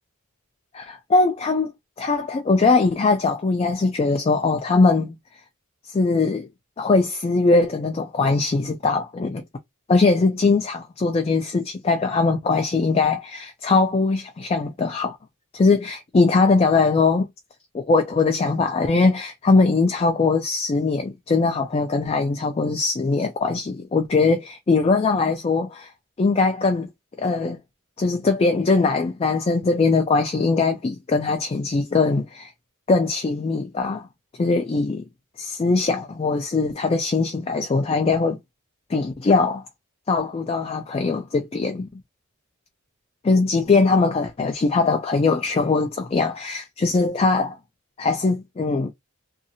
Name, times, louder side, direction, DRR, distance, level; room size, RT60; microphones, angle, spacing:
voice 1, 0.7-1.7 2.0-5.1 5.9-6.5 6.8-9.4 9.9-15.2 15.5-17.3 17.7-25.9 26.2-26.9 27.2-27.6 28.0-32.5 32.9-34.1 34.4-35.1 35.4-38.4 38.9-39.6 40.1-41.9 43.2-47.6 48.0-48.9, left 3 dB, 25° left, 0.3 m, -21 dB
2.7 x 2.4 x 2.7 m
head